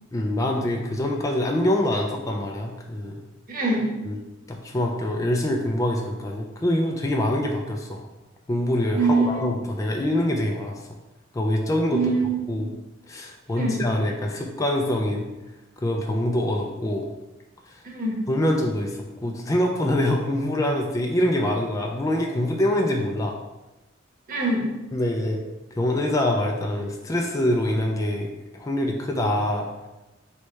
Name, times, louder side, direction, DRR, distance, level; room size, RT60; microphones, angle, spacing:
voice 1, 0.1-3.2 4.1-4.2 4.5-8.1 8.5-10.9 11.3-12.1 12.5-12.7 13.1-15.3 15.8-17.1 17.7-17.8 18.3-23.4 24.9-25.4 25.7-29.7, left 1 dB, 15° left, 1 dB, 0.3 m, -25 dB
voice 2, 3.5-3.8 8.9-9.5 11.9-12.6 13.6-13.8 17.8-18.2 24.3-24.6, right 3 dB, 45° right, -3 dB, 1.0 m, -24 dB
3.1 x 3.1 x 4.5 m, 1.0 s
head